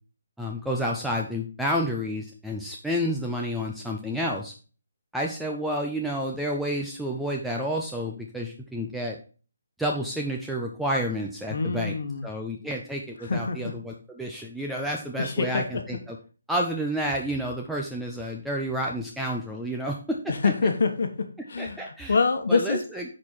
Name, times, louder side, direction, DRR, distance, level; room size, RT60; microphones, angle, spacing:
voice 1, 0.4-4.5 5.1-9.2 9.8-11.9 12.2-16.2 16.5-20.2 20.4-20.5 21.6-22.2 22.5-23.0, equal, ahead, -1 dB, 0.6 m, -30 dB
voice 2, 11.5-12.3 13.2-13.7 15.2-15.8 20.3-22.8, left 4 dB, 65° left, 6 dB, 1.2 m, -26 dB
8.2 x 4.3 x 4.4 m, 0.37 s
hypercardioid pair, 155°, 0 cm